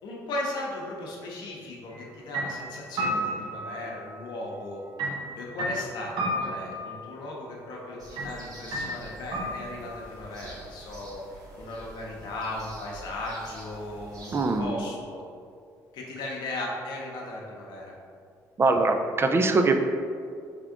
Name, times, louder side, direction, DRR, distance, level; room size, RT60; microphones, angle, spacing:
voice 1, 0.0-4.8 5.3-11.2 11.5-15.2 15.9-17.9, left 2 dB, 75° left, -3 dB, 0.8 m, -37 dB
sound 1, 1.9-2.1 2.3-4.2 5.0-7.0 8.2-8.3 8.7-10.0, equal, 70° right, 1.0 m, -32 dB
sound 2, 8.0-14.6, right 1 dB, 50° right, 1.2 m, -47 dB
voice 2, 14.3-14.8 18.6-19.8, right 3 dB, 30° right, 5 dB, 0.4 m, -22 dB
3.6 x 3.4 x 3.6 m, 2.3 s
supercardioid pair, 70°, 8 cm